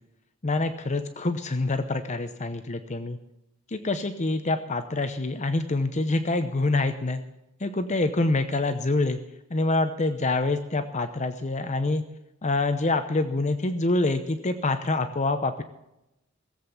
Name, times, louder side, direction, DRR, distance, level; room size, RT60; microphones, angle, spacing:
voice 1, 0.4-3.2 3.7-7.2 7.6-9.2 9.5-12.0 12.4-15.6, left 2 dB, 35° left, 8 dB, 0.8 m, -26 dB
18.0 x 8.0 x 7.1 m, 0.88 s
head